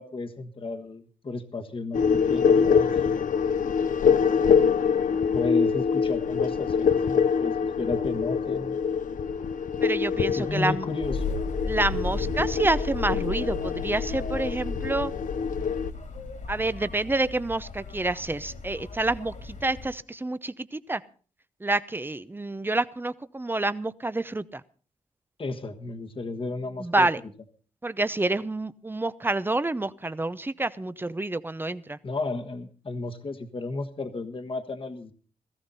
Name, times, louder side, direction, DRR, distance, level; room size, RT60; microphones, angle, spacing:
voice 1, 0.0-2.9 5.3-8.8 10.4-11.4 25.4-27.1 32.0-35.1, left 3 dB, 40° left, 6 dB, 1.4 m, -33 dB
sound 1, 1.9-15.9, left 6 dB, 90° left, 0.9 m, -25 dB
voice 2, 9.8-10.9 11.7-15.1 16.5-21.0 21.6-24.6 26.8-27.2 27.8-32.0, right 2 dB, 15° right, 14 dB, 0.8 m, -28 dB
sound 2, 11.0-19.9, left 3 dB, 75° left, 3.6 m, -35 dB
17.5 x 15.0 x 4.1 m, 0.40 s
wide cardioid pair, 95°, 13 cm